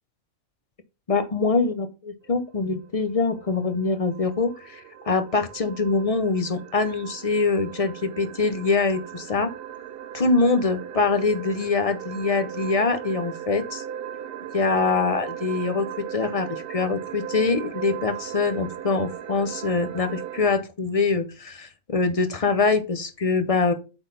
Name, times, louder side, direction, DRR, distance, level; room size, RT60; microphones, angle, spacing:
voice 1, 1.1-9.5 10.1-13.8 14.5-23.7, left 4 dB, 45° left, 9 dB, 0.4 m, -24 dB
sound 1, 2.3-20.5, right 10 dB, 60° right, 0.6 m, -38 dB
8.2 x 3.9 x 3.9 m, 0.31 s
omnidirectional pair, 1.4 m